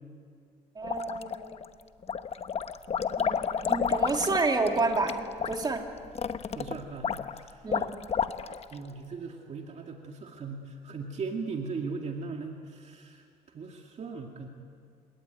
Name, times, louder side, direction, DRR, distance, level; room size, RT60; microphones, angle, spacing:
sound 1, 0.8-1.6 2.0-8.7, left 6 dB, 35° left, 1.0 m, -31 dB
voice 1, 0.8-1.6 3.2-3.4 3.7-5.8 7.6-7.9, right 3 dB, 25° right, 3 dB, 2.7 m, -29 dB
voice 2, 6.5-7.1 7.4-7.6 8.7-13.2 13.5-14.5, right 4 dB, 40° right, 2 dB, 2.2 m, -38 dB
30.0 x 18.0 x 9.2 m, 2.3 s
cardioid pair, 110°, 17 cm